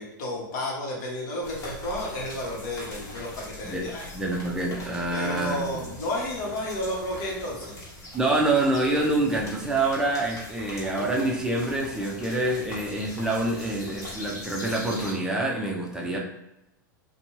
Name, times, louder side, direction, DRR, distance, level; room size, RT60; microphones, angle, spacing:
voice 1, 0.0-4.1 5.1-7.8, left 1 dB, 60° left, -3 dB, 1.0 m, -32 dB
sound 1, 1.4-15.1, left 1 dB, 30° left, 1.1 m, -41 dB
voice 2, 4.1-5.9 8.1-16.2, right 2 dB, 5° right, -2 dB, 0.5 m, -26 dB
2.5 x 2.3 x 3.0 m, 0.91 s
hypercardioid pair, 100°, 11 cm